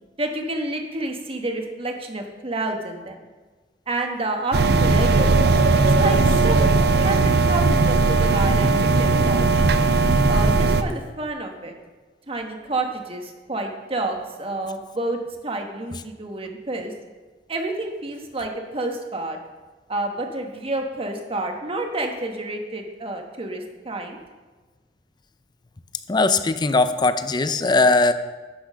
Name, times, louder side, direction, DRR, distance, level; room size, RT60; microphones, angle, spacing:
voice 1, 0.2-3.2 3.9-5.4 6.0-9.8 10.3-11.7 12.3-16.9 17.5-19.4 19.9-24.2, right 2 dB, 30° right, 3 dB, 1.2 m, -29 dB
sound 1, 4.5-10.8, right 3 dB, 60° right, 0.5 m, -18 dB
voice 2, 26.1-28.1, left 3 dB, 25° left, 11 dB, 0.5 m, -19 dB
10.5 x 6.3 x 6.3 m, 1.3 s
head